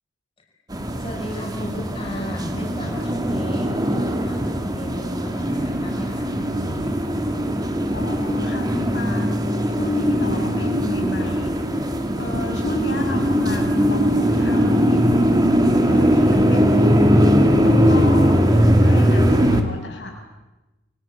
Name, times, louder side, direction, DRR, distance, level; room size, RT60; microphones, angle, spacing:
sound 1, 0.7-19.6, equal, 20° right, 2.4 m, -20 dB
voice 1, 1.0-6.3, equal, 30° left, 0 dB, 5.8 m, -34 dB
voice 2, 7.9-9.3 9.7-11.6 12.1-15.6 15.8-20.2, left 1 dB, 80° left, 2 dB, 7.1 m, -32 dB
28.0 x 23.5 x 8.6 m, 1.1 s
head